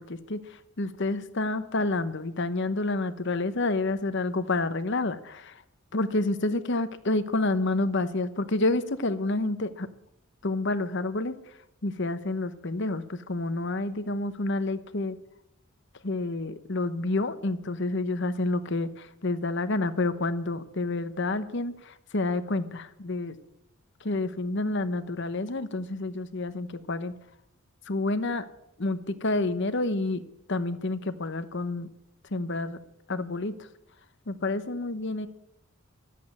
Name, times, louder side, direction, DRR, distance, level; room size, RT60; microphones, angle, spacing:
voice 1, 0.0-5.6 5.9-9.9 10.4-15.2 16.0-23.4 24.0-27.1 27.9-28.4 28.8-30.2 30.5-31.9 32.3-32.8 33.1-33.7 34.3-35.3, left 2 dB, 55° left, 12 dB, 1.0 m, -29 dB
13.0 x 8.5 x 9.7 m, 0.81 s
head